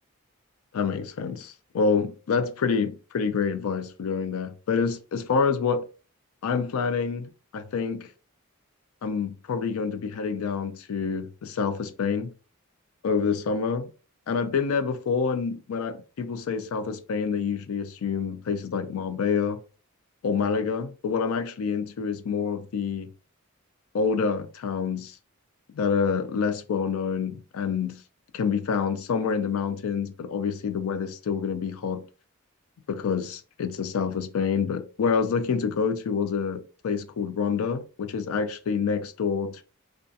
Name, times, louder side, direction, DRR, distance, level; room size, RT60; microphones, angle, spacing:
voice 1, 0.7-5.9 6.4-8.1 9.0-12.3 13.0-13.8 14.3-19.6 20.2-23.1 23.9-25.2 25.7-28.0 28.3-32.1 32.9-39.6, left 5 dB, 80° left, 0.4 m, -27 dB
2.3 x 2.2 x 2.6 m
head